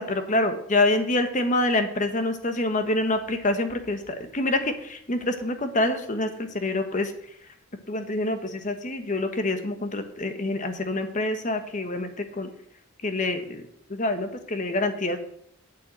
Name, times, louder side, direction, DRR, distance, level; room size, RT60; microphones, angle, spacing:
voice 1, 0.0-7.1 7.9-12.5 13.0-13.6 13.9-15.2, left 2 dB, 40° left, 8 dB, 1.2 m, -26 dB
8.8 x 7.1 x 8.0 m, 0.70 s
head